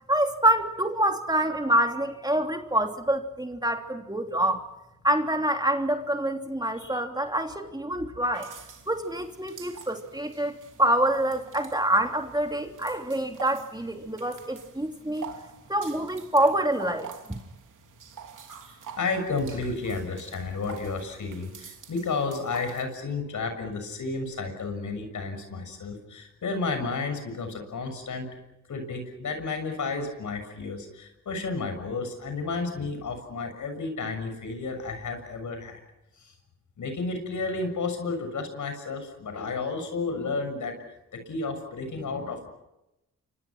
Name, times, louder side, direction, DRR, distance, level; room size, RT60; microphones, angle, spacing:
voice 1, 0.1-4.6 5.0-8.5 8.9-15.3 15.7-17.4, right 1 dB, 15° right, 4 dB, 3.0 m, -26 dB
sound 1, 8.3-22.8, right 6 dB, 70° right, 3.1 m, -46 dB
voice 2, 18.7-28.3 28.7-35.8 36.2-36.3 36.8-40.7 41.1-42.5, left 3 dB, 70° left, 7 dB, 6.8 m, -32 dB
29.0 x 25.5 x 6.1 m, 0.90 s
cardioid pair, 60°, 32 cm